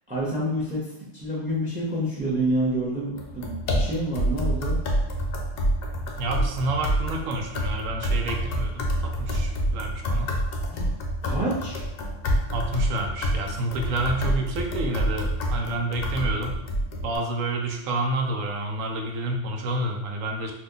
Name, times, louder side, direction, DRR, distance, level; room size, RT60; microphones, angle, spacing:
voice 1, 0.1-4.8 10.6-10.9 11.2-11.8, right 1 dB, 10° right, -5 dB, 0.5 m, -28 dB
sound 1, 3.2-17.2, equal, 60° left, 0.7 m, -27 dB
voice 2, 6.2-10.4 12.5-16.6 17.0-20.5, right 2 dB, 90° right, 2 dB, 1.0 m, -29 dB
2.7 x 2.4 x 3.6 m, 0.86 s
omnidirectional pair, 1.3 m